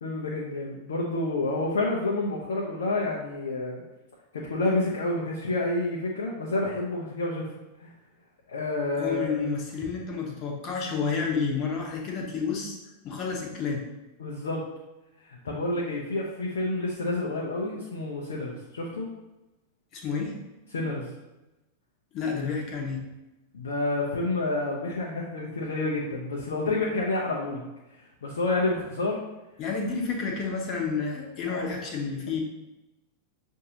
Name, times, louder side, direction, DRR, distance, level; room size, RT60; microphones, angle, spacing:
voice 1, 0.0-3.8 4.3-7.5 7.8-7.9 8.5-9.3 14.2-14.7 15.2-19.1 20.7-21.1 23.5-27.7 28.2-29.2 31.4-31.7, left 2 dB, 65° left, -3 dB, 0.6 m, -29 dB
voice 2, 9.0-12.8 13.0-13.8 19.9-20.3 22.1-23.0 29.6-32.4, left 5 dB, 35° left, 0 dB, 0.9 m, -30 dB
6.3 x 2.6 x 2.8 m, 1.0 s
figure-of-eight pair, 90°, 0 cm